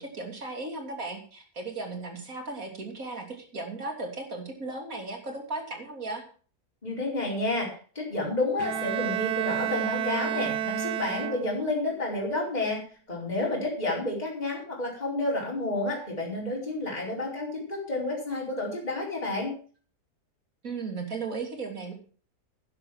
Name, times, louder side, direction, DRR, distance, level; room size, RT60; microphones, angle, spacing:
voice 1, 0.0-6.2 20.6-21.9, right 3 dB, 55° right, 3 dB, 3.4 m, -36 dB
voice 2, 6.8-7.7 7.9-12.8 13.1-19.5, left 2 dB, 25° left, -3 dB, 4.9 m, -30 dB
Bowed string instrument, 8.6-11.8, right 10 dB, 80° right, 1.4 m, -30 dB
11.0 x 11.0 x 6.0 m, 0.41 s
omnidirectional pair, 1.7 m